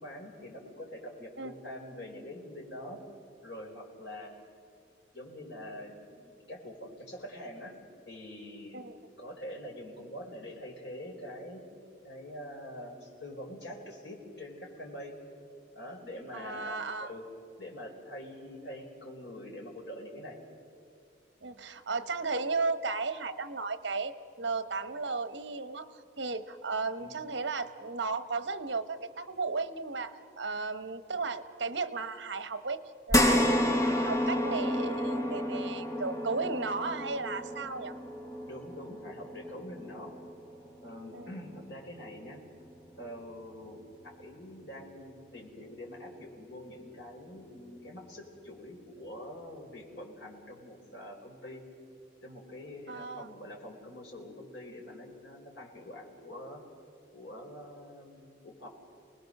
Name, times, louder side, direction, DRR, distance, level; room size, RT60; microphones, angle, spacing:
voice 1, 0.0-3.0 3.4-4.3 5.1-7.7 8.0-11.6 12.0-15.1 15.7-17.2 17.6-20.4 27.0-27.2 38.4-40.1 40.8-42.4 43.0-51.6 52.2-56.6 57.1-58.7, left 1 dB, 65° left, 0 dB, 4.5 m, -45 dB
voice 2, 16.3-17.1 21.4-32.8 33.1-33.4 33.8-37.9 41.1-41.3 52.9-53.3, right 4 dB, 70° right, 11 dB, 1.1 m, -35 dB
sound 1, 33.1-41.7 42.2-42.3 43.7-43.8, left 1 dB, 15° left, 1.1 m, -31 dB
29.5 x 20.0 x 6.6 m, 2.4 s
head